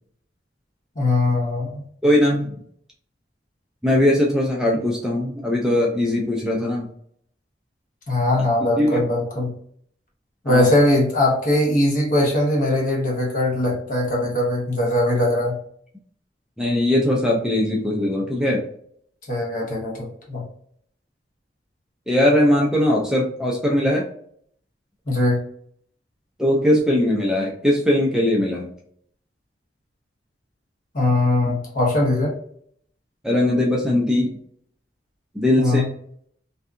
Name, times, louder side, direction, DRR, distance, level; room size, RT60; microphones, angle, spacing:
voice 1, 1.0-1.8 8.1-9.5 10.4-15.6 19.3-20.4 25.1-25.4 30.9-32.3 35.6-35.9, left 1 dB, 50° left, -2 dB, 1.0 m, -20 dB
voice 2, 2.0-2.5 3.8-6.9 8.8-9.1 10.5-10.7 16.6-18.7 22.1-24.0 26.4-28.7 33.2-34.4 35.3-35.9, left 1 dB, 5° right, -2 dB, 0.4 m, -20 dB
2.7 x 2.3 x 2.4 m, 0.64 s
head